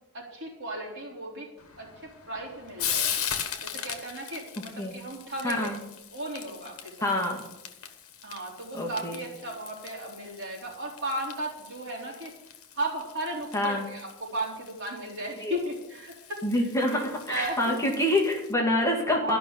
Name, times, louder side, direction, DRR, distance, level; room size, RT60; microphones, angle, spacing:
voice 1, 0.1-1.5 1.8-3.2 3.6-5.8 6.1-7.1 8.2-12.3 12.7-17.7 19.1-19.4, right 1 dB, 55° right, -2 dB, 4.0 m, -36 dB
Frying (food), 1.6-18.5, left 9 dB, 70° left, 1.4 m, -39 dB
voice 2, 5.4-5.8 7.0-7.4 8.7-9.2 13.5-13.8 15.4-15.6 16.4-19.4, left 1 dB, 15° left, -1 dB, 1.9 m, -26 dB
13.5 x 5.9 x 9.2 m, 0.92 s
head